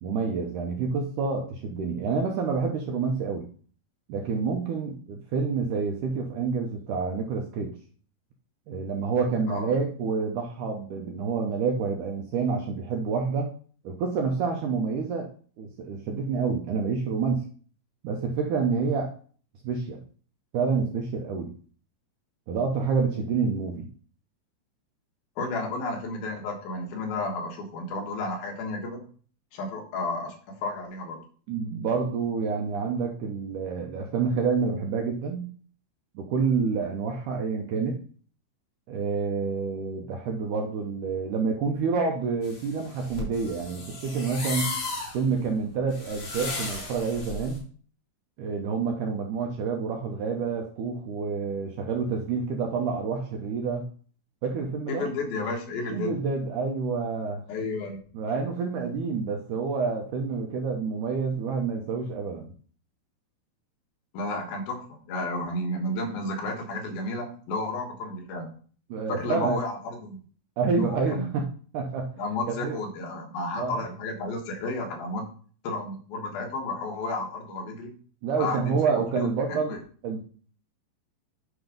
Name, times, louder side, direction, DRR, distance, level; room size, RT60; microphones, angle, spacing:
voice 1, 0.0-3.5 4.1-7.7 8.7-13.5 13.9-15.3 15.6-17.4 18.0-19.1 19.6-20.0 20.5-21.5 22.5-23.9 31.5-35.5 36.2-38.0 38.9-44.7 45.1-47.6 48.4-53.9 54.4-55.1 55.9-57.4 58.1-62.5 68.9-69.6 70.6-71.5 71.7-72.1 72.6-72.8 73.6-73.9 78.2-79.8 80.0-80.2, right 5 dB, 75° right, 2 dB, 1.9 m, -28 dB
voice 2, 25.4-29.0 29.5-31.2 54.9-56.2 57.5-58.0 64.1-68.6 69.1-70.2 70.8-71.3 72.2-75.3 75.6-78.0 78.4-78.8 79.1-79.3 79.7-79.8, left 2 dB, 75° left, 2 dB, 3.2 m, -32 dB
sound 1, 42.4-47.6, left 3 dB, 45° left, 3.5 m, -35 dB
9.6 x 3.6 x 5.1 m, 0.43 s
omnidirectional pair, 4.4 m